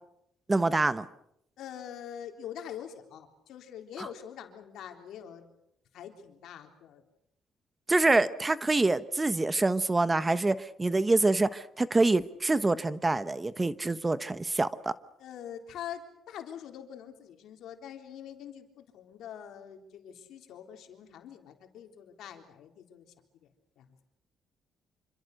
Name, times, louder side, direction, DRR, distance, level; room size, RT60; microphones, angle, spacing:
voice 1, 0.5-1.0 7.9-14.9, right 2 dB, 20° right, 14 dB, 1.1 m, -26 dB
voice 2, 1.6-5.5 5.9-7.0 15.2-23.1 23.4-23.5 23.8-23.9, left 9 dB, 80° left, 5 dB, 3.6 m, -44 dB
27.0 x 25.5 x 6.6 m, 0.79 s
cardioid pair, 90°, 0 cm